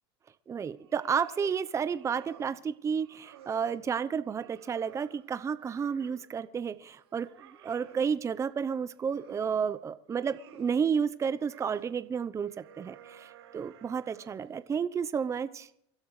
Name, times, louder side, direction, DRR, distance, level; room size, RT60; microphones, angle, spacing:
voice 1, 0.5-7.3 7.6-15.7, right 6 dB, 20° right, 12 dB, 0.7 m, -31 dB
sound 1, 0.7-1.6 1.9-2.6 2.9-3.8 4.3-6.3 6.7-8.1 8.8-9.7 10.0-10.8 11.3-11.9 12.4-14.5, right 9 dB, 85° right, 5.4 m, -55 dB
28.5 x 12.0 x 3.2 m, 0.74 s
hypercardioid pair, 100°, 13 cm